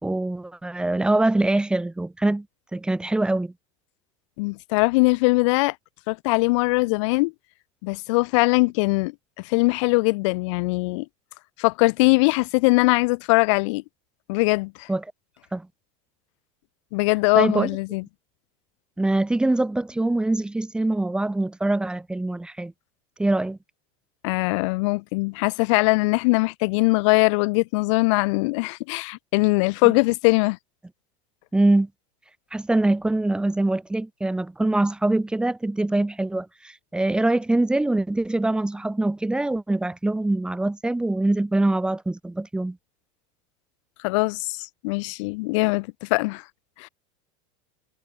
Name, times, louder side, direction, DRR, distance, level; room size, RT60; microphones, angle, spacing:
voice 1, 0.0-2.5 2.7-3.5 14.9-15.0 15.5-15.7 17.4-17.7 19.0-22.7 23.2-23.6 29.8-29.9 31.5-31.9 32.5-42.8, right 2 dB, 5° right, 2.5 m, -23 dB
voice 2, 4.4-5.7 6.1-7.3 7.8-9.1 9.4-11.1 11.6-13.8 14.3-14.9 16.9-18.0 24.2-30.6 44.0-46.4 46.8-46.9, left 26 dB, 60° left, 1.9 m, -21 dB
supercardioid pair, 155°, 17 cm